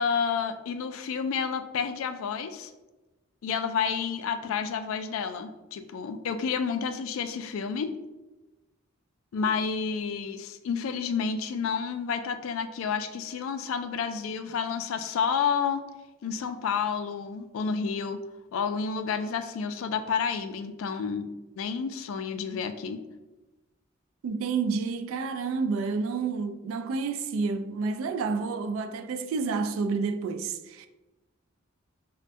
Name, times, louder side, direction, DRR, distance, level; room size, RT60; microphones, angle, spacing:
voice 1, 0.0-2.7 3.4-7.9 9.3-15.8 16.2-18.2 18.5-23.0, left 6 dB, 80° left, 0.3 m, -30 dB
voice 2, 24.2-30.9, right 4 dB, 80° right, 0.3 m, -29 dB
5.2 x 2.1 x 2.5 m
head